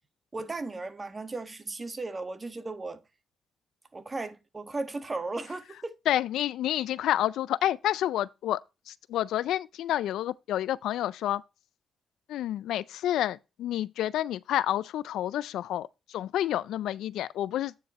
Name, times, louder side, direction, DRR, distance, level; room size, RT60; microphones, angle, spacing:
voice 1, 0.3-3.0 3.9-5.9, right 3 dB, 30° right, 1.4 m, -36 dB
voice 2, 6.1-8.6 8.9-11.4 12.3-17.7, left 12 dB, 85° left, 0.4 m, -29 dB
9.0 x 4.7 x 4.1 m
cardioid pair, 70°, 0 cm